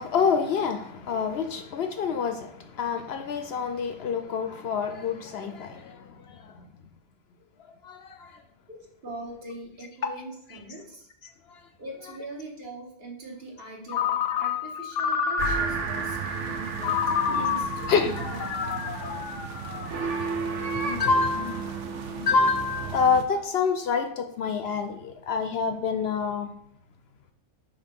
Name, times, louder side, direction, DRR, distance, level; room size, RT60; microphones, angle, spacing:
voice 1, 0.0-6.6 7.8-8.4 10.0-10.1 11.5-11.6 17.9-18.1 19.0-19.1 20.8-21.7 22.1-26.5, left 5 dB, 65° left, 0.7 m, -27 dB
voice 2, 9.0-11.1 11.8-18.5, right 2 dB, 50° right, 1.5 m, -41 dB
Ringtone, 13.9-16.0 16.8-20.2, left 7 dB, 85° left, 1.0 m, -29 dB
sound 1, 15.4-23.2, right 5 dB, 75° right, 1.0 m, -33 dB
5.6 x 3.4 x 5.2 m
omnidirectional pair, 1.2 m